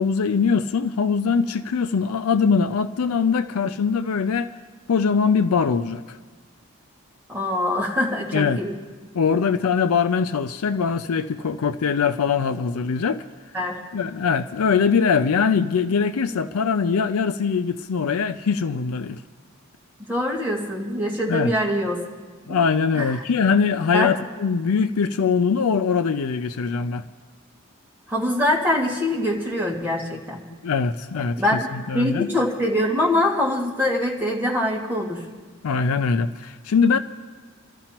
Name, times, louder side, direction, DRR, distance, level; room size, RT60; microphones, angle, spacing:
voice 1, 0.0-4.5 4.9-6.2 8.3-8.6 9.1-13.2 13.9-19.2 21.3-21.5 22.5-27.0 30.6-32.3 35.6-37.0, left 5 dB, 75° left, 10 dB, 0.4 m, -22 dB
voice 2, 7.3-8.8 13.5-13.8 20.0-22.0 22.5-22.6 23.0-23.2 23.9-24.1 28.1-30.4 31.4-35.2, left 1 dB, 10° right, -4 dB, 2.0 m, -24 dB
27.5 x 13.5 x 2.9 m, 1.4 s
head